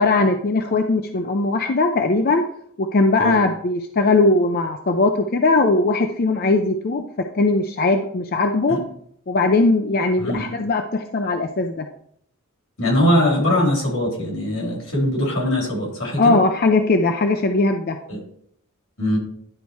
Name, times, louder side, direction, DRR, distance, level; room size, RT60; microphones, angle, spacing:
voice 1, 0.0-2.5 2.8-8.8 9.3-11.9 16.2-18.0, left 3 dB, 45° left, 6 dB, 0.5 m, -19 dB
voice 2, 12.8-16.4 18.1-18.2 19.0-19.2, left 1 dB, 85° left, -2 dB, 4.0 m, -21 dB
11.0 x 4.2 x 4.6 m, 0.66 s
head